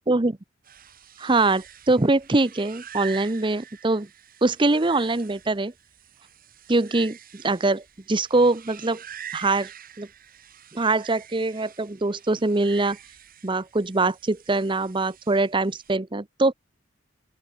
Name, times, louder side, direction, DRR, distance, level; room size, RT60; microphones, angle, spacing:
voice 1, 0.1-0.4 1.2-4.1 4.4-5.7 6.7-9.0 9.3-9.7 10.0-10.1 10.7-13.0 13.4-16.5, right 2 dB, 25° right, 0.7 m, -23 dB
sound 1, 0.6-15.9, right 9 dB, 45° right, 7.6 m, -45 dB
open air
head